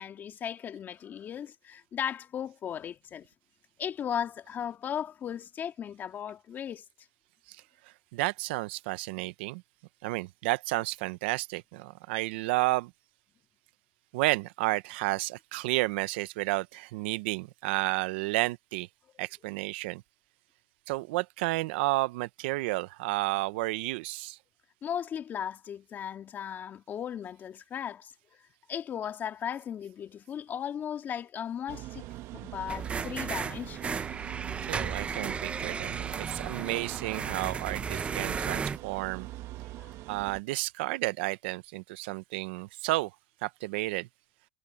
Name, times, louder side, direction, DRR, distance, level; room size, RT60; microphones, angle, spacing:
voice 1, 0.0-3.3 3.8-6.8 24.8-28.1 28.7-32.1 32.3-34.0 39.8-39.9, left 9 dB, 35° left, 2.5 m, -36 dB
voice 2, 8.1-9.6 10.0-12.9 14.1-18.9 19.2-20.0 20.9-24.4 34.6-39.3 40.1-43.1 43.4-44.1, right 21 dB, 75° right, 0.7 m, -31 dB
sound 1, 31.7-40.4, right 16 dB, 55° right, 1.1 m, -42 dB
sound 2, 32.7-38.8, right 5 dB, 20° right, 0.8 m, -35 dB
supercardioid pair, 130°, 6 cm